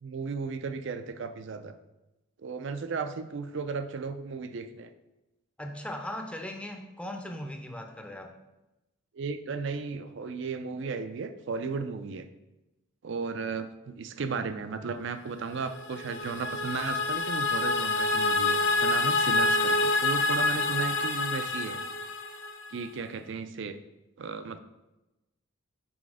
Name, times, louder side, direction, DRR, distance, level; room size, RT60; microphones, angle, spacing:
voice 1, 0.0-1.7 2.4-4.9 9.1-12.3 13.0-21.8 22.7-23.8 24.2-24.6, right 4 dB, 55° right, 10 dB, 0.4 m, -35 dB
voice 2, 5.6-8.3, left 1 dB, 5° left, 3 dB, 0.5 m, -38 dB
sound 1, 15.6-22.8, left 2 dB, 55° left, 0.6 m, -27 dB
6.2 x 4.1 x 4.8 m, 0.99 s
head